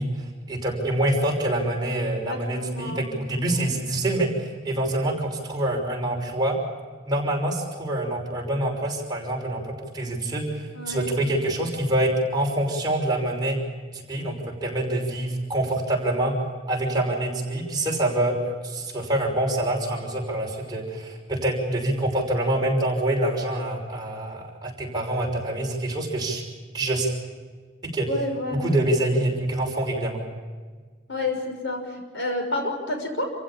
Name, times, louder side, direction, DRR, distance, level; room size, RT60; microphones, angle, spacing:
voice 1, 0.0-6.6 7.0-13.6 13.9-16.3 16.7-18.4 18.6-26.4 26.7-27.1 27.8-28.1 28.6-30.2, right 1 dB, 20° right, -1 dB, 5.9 m, -26 dB
voice 2, 2.3-3.0 3.4-3.7 10.7-11.1 28.1-28.8 29.0-29.2 31.1-33.3, left 2 dB, 65° left, 3 dB, 6.1 m, -30 dB
28.5 x 16.0 x 8.7 m, 1.5 s
head